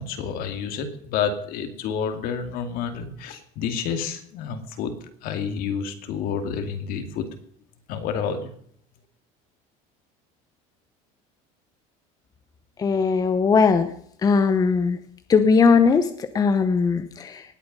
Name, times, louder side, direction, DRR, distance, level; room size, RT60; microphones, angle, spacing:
voice 1, 0.0-4.9 5.2-7.3 7.9-8.5, left 6 dB, 60° left, 7 dB, 2.5 m, -29 dB
voice 2, 12.8-13.9 14.2-15.0 15.3-17.4, left 5 dB, 25° left, 9 dB, 0.9 m, -19 dB
19.0 x 8.8 x 5.4 m, 0.64 s
cardioid pair, 145°, 16 cm